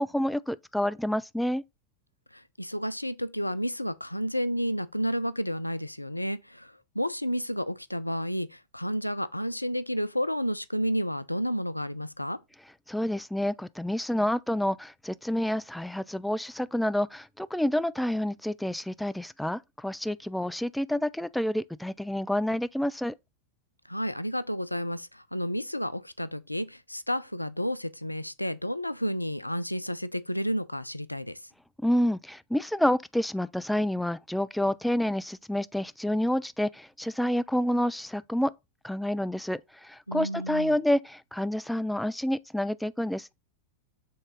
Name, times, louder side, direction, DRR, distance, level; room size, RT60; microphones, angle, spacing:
voice 1, 0.0-1.6 12.9-23.1 31.8-38.5 38.8-43.3, left 1 dB, ahead, 0.3 m, -28 dB
voice 2, 2.3-12.4 23.9-31.4 40.1-40.8, equal, 85° left, 0.4 m, -31 dB
6.9 x 3.7 x 3.8 m
figure-of-eight pair, 90°, 0 cm